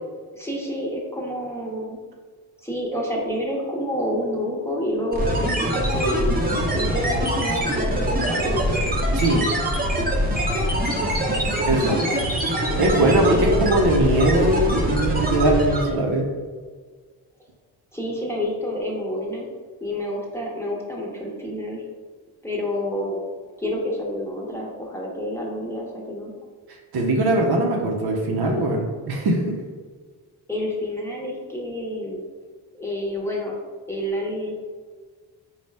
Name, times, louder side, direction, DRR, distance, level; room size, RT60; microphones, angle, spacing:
voice 1, 0.3-2.0 2.6-6.4 6.7-8.9 13.0-13.9 17.9-19.5 19.8-21.8 22.4-23.2 23.6-26.3 30.5-32.2 32.7-33.5 33.9-34.5, equal, 5° left, -3 dB, 1.0 m, -28 dB
sound 1, 5.1-16.0, equal, 20° right, 0.9 m, -23 dB
voice 2, 9.1-9.5 11.6-12.0 12.8-16.3 26.7-29.6, right 1 dB, 55° right, 0 dB, 0.8 m, -21 dB
4.0 x 2.3 x 3.3 m, 1.5 s
supercardioid pair, 55°, 46 cm